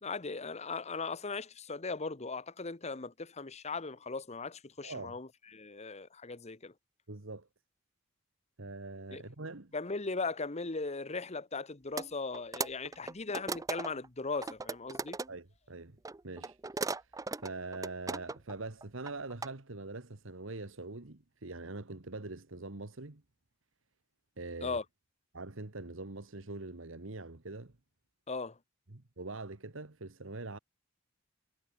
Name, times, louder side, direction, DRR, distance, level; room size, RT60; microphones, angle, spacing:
voice 1, 0.0-6.7 9.1-9.2 9.7-15.2 24.6-24.8 28.3-28.6, left 4 dB, 30° left, 1.1 m, -38 dB
voice 2, 4.8-5.1 7.1-7.5 8.6-9.7 15.3-16.6 17.4-23.2 24.4-24.8 25.3-27.7 28.9-30.6, right 3 dB, 65° right, 1.6 m, -43 dB
sound 1, 12.0-12.1 12.3-14.1 14.4-15.3 16.0-18.5 18.8-19.5, right 3 dB, 15° right, 0.5 m, -37 dB
head